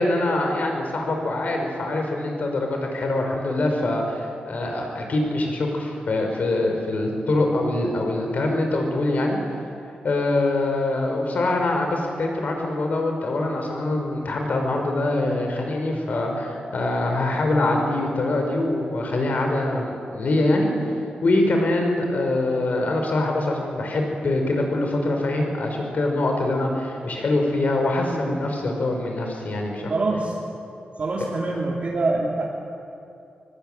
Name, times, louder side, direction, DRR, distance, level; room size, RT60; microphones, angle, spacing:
voice 1, 0.0-9.4 10.0-20.7 21.2-29.9, left 2 dB, 55° left, 2 dB, 5.3 m, -24 dB
voice 2, 28.1-28.5 29.9-30.3 31.0-32.4, right 3 dB, 45° right, -4 dB, 3.3 m, -25 dB
24.0 x 23.5 x 9.2 m, 2.7 s
wide cardioid pair, 155°, 3 cm